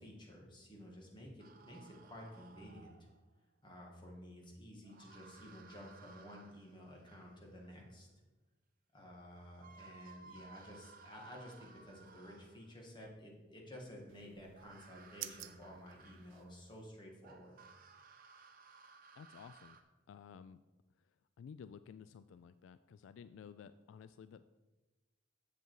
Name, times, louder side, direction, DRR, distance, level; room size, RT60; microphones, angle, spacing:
voice 1, 0.0-2.9 3.6-8.1 8.9-17.5, equal, 25° left, -1 dB, 1.8 m, -53 dB
sound 1, 1.4-3.3 4.8-7.8 9.1-9.2 9.5-12.8 14.5-16.6 17.2-19.8, right 4 dB, 45° right, 0.8 m, -60 dB
sound 2, 14.1-16.9, right 13 dB, 70° right, 0.5 m, -52 dB
voice 2, 19.1-19.8 20.1-20.6 21.0-21.1 21.4-24.4, left 7 dB, 70° left, 13 dB, 0.3 m, -54 dB
7.9 x 7.0 x 4.7 m, 1.2 s
head